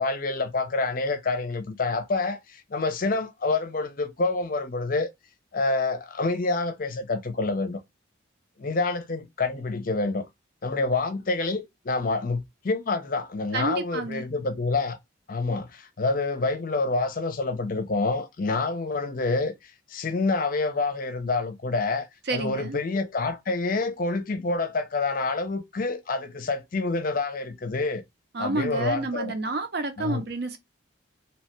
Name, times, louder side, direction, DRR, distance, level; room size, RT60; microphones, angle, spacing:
voice 1, 0.0-5.1 5.5-7.8 8.6-10.2 10.6-15.0 15.3-28.0 28.4-29.3 30.0-30.2, left 3 dB, 45° left, 0.5 m, -27 dB
voice 2, 13.5-14.2 22.3-22.8 28.3-30.6, right 3 dB, 55° right, 0.6 m, -30 dB
2.9 x 2.2 x 2.9 m
head